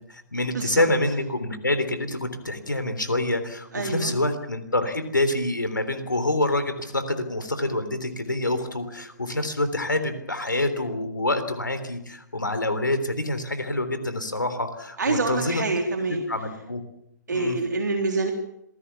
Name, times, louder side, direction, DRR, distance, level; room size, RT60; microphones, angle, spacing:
voice 1, 0.1-15.6 16.3-16.8 17.3-17.6, left 1 dB, 85° left, 10 dB, 3.5 m, -26 dB
voice 2, 3.7-4.1 15.0-16.2 17.3-18.3, right 3 dB, 70° right, 3 dB, 3.5 m, -26 dB
27.0 x 19.0 x 7.3 m, 0.78 s
figure-of-eight pair, 125°, 10 cm